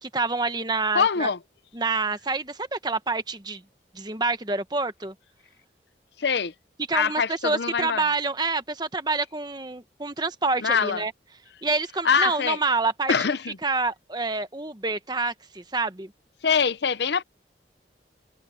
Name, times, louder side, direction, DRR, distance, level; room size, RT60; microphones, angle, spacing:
voice 1, 0.0-1.3 1.7-3.6 3.9-5.1 6.9-11.1 11.6-13.1 13.6-16.1, right 3 dB, 25° right, 1.2 m, -27 dB
voice 2, 0.9-1.4 6.2-6.5 6.9-8.0 10.6-11.0 12.0-12.6 13.1-13.6 16.4-17.2, left 6 dB, 70° left, 0.7 m, -23 dB
head